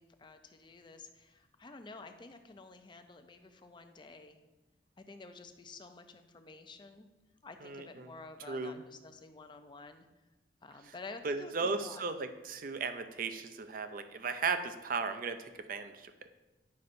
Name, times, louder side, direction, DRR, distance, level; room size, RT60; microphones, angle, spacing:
voice 1, 0.0-4.4 5.0-7.1 7.4-10.1 10.6-12.0, left 3 dB, 25° left, 7 dB, 0.5 m, -50 dB
voice 2, 7.6-8.1 8.5-8.8 11.2-16.1, right 4 dB, 50° right, 9 dB, 0.5 m, -36 dB
9.4 x 5.4 x 2.6 m, 1.1 s
head